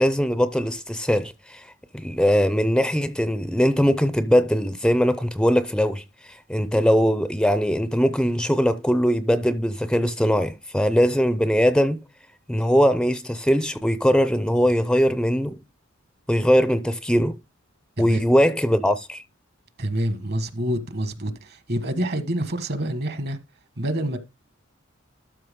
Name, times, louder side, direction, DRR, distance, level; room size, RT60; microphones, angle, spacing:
voice 1, 0.0-1.6 1.9-12.0 12.5-15.6 16.3-17.4 18.0-19.2, equal, 5° left, 0.5 m, -21 dB
voice 2, 19.8-23.4 23.8-24.2, right 1 dB, 55° right, 1.4 m, -27 dB
12.5 x 5.7 x 3.6 m
head